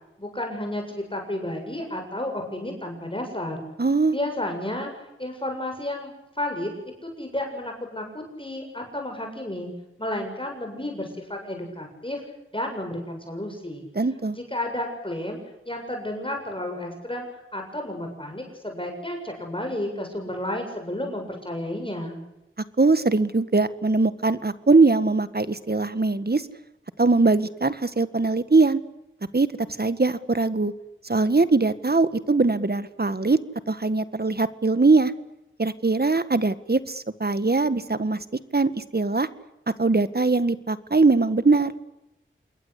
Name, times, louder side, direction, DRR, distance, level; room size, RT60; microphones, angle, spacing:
voice 1, 0.2-3.7 4.1-4.9 5.2-6.7 7.0-9.7 10.0-12.2 12.5-13.9 14.3-15.4 15.7-22.2, left 1 dB, 25° left, 3 dB, 7.6 m, -32 dB
voice 2, 3.8-4.2 14.0-14.4 22.8-26.4 27.0-28.8 29.3-29.5 29.8-30.7 31.1-33.4 33.7-35.1 35.6-38.2 38.5-39.3 39.8-41.7, right 3 dB, 50° right, 13 dB, 1.7 m, -21 dB
27.5 x 21.5 x 8.4 m, 0.91 s
wide cardioid pair, 40°, 21 cm